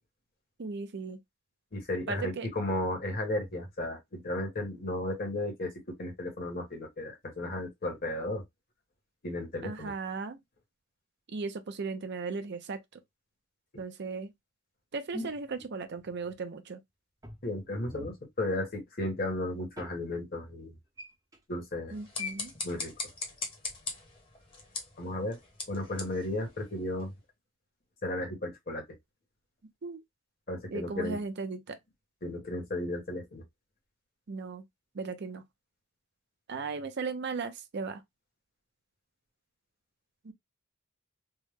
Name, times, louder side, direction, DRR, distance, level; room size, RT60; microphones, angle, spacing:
voice 1, 0.6-1.2 2.1-2.5 9.6-10.4 11.3-12.8 13.8-14.3 14.9-16.8 21.9-22.5 29.8-30.0 30.7-31.8 34.3-34.6 34.9-35.4 36.5-38.0 40.2-40.3, right 4 dB, 55° right, 0.5 m, -36 dB
voice 2, 1.7-8.4 9.2-9.9 17.4-20.7 21.5-21.9 22.6-22.9 25.0-25.4 25.7-27.1 28.0-28.8 30.5-31.2 32.2-33.4, left 1 dB, 45° left, 1.3 m, -34 dB
sound 1, 15.1-16.4 17.2-18.3 19.8-19.9 21.0-21.4 22.2-22.5, left 2 dB, 15° right, 0.8 m, -41 dB
sound 2, 21.9-27.2, left 3 dB, 25° left, 1.1 m, -41 dB
3.4 x 2.1 x 3.3 m
head